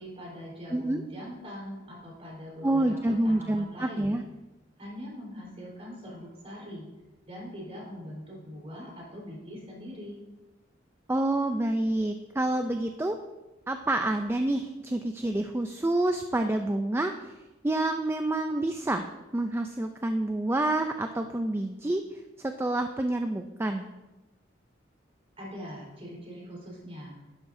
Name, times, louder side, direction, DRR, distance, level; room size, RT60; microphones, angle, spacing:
voice 1, 0.0-4.2 4.8-6.9 7.3-10.2 25.4-27.1, equal, 35° right, -4 dB, 4.0 m, -42 dB
voice 2, 0.7-1.0 2.6-4.2 11.1-13.2 13.7-17.3 17.6-19.1 19.3-22.0 22.4-23.8, right 1 dB, 15° right, 6 dB, 0.4 m, -28 dB
11.5 x 11.0 x 2.7 m, 1.1 s
head